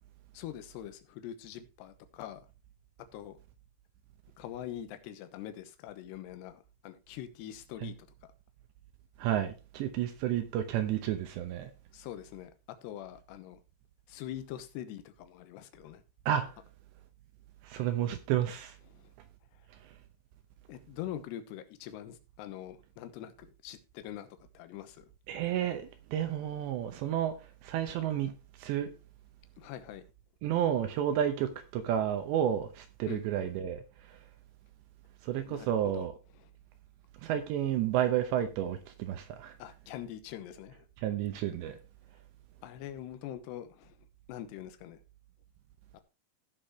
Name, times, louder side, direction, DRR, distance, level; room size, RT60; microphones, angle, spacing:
voice 1, 0.3-2.4 3.1-3.4 4.4-7.9 11.9-12.5 12.8-13.6 14.1-16.0 20.7-24.3 24.5-25.1 29.6-30.0 33.1-33.3 35.5-35.7 35.9-36.0 39.6-40.9 42.6-43.9 44.3-45.0 45.9-46.0, left 11 dB, 75° left, 2.8 m, -43 dB
voice 2, 9.2-11.7 16.3-16.6 17.6-18.8 19.8-19.9 25.3-28.3 28.6-28.9 30.4-34.2 35.2-36.2 37.2-39.6 41.0-41.8, right 10 dB, 75° right, 2.8 m, -31 dB
17.0 x 6.1 x 3.1 m
omnidirectional pair, 5.6 m